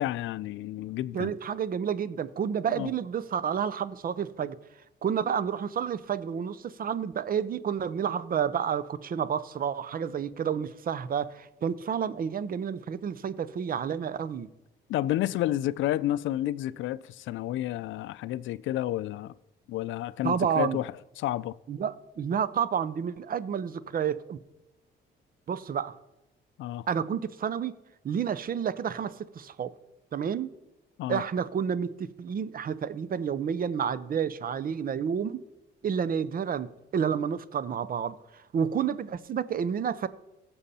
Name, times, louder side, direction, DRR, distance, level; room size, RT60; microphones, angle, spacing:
voice 1, 0.0-1.4 2.7-2.9 14.9-19.3 19.7-20.9 21.2-21.6 26.6-26.9 31.0-31.2, left 14 dB, 75° left, 0.4 m, -30 dB
voice 2, 1.1-4.6 5.0-14.5 20.2-20.8 21.7-24.4 25.5-26.0 26.9-27.8 28.0-29.7 30.1-30.5 31.1-35.4 35.8-40.1, right 7 dB, 45° right, 0.6 m, -30 dB
16.0 x 7.0 x 4.2 m
cardioid pair, 90°, 20 cm